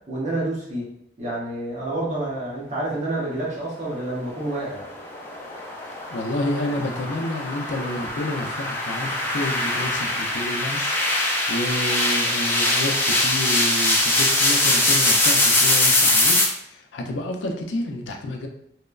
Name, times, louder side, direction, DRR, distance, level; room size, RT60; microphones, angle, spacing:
voice 1, 0.1-0.9 1.2-4.9, right 2 dB, 40° right, -6 dB, 0.9 m, -28 dB
sound 1, 4.4-16.4, left 2 dB, 10° left, 0.3 m, -22 dB
voice 2, 6.1-10.9 11.5-16.4 16.7-18.5, left 1 dB, 90° left, 3 dB, 0.4 m, -29 dB
3.0 x 2.0 x 2.3 m, 0.73 s
head